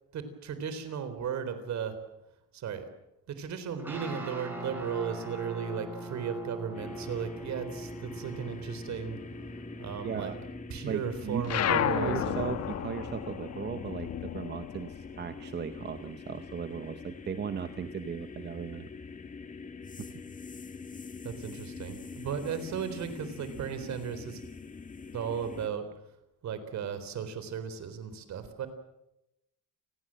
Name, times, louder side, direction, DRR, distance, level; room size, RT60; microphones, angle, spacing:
voice 1, 0.1-2.0 2.5-2.9 3.3-9.2 9.8-10.3 10.7-12.4 21.2-24.4 25.1-25.8 26.4-28.7, right 7 dB, 55° right, 11 dB, 3.9 m, -35 dB
sound 1, 3.8-14.3, right 1 dB, 5° right, 7.6 m, -43 dB
sound 2, 6.7-25.7, left 5 dB, 25° left, 1.7 m, -45 dB
voice 2, 10.0-10.3 10.9-18.9 20.0-20.1, right 7 dB, 30° right, 10 dB, 0.9 m, -37 dB
sound 3, 11.4-16.3 16.6-18.1, left 10 dB, 50° left, 1.2 m, -33 dB
30.0 x 20.0 x 7.6 m, 0.91 s
cardioid pair, 175°, 33 cm